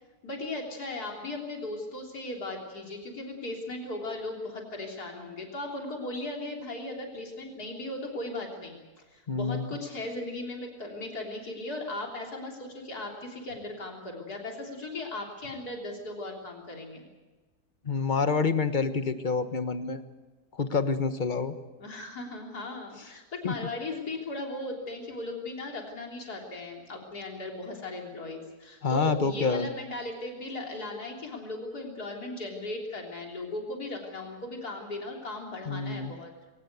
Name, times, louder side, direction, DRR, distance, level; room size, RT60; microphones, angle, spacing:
voice 1, 0.2-8.8 9.1-17.0 21.8-36.3, left 2 dB, 75° left, 1 dB, 4.1 m, -37 dB
voice 2, 9.3-9.8 17.8-20.0 20.5-21.6 23.4-23.7 28.8-29.7 35.7-36.1, left 5 dB, 35° left, 10 dB, 1.3 m, -28 dB
22.5 x 19.0 x 8.1 m, 1.2 s
omnidirectional pair, 1.6 m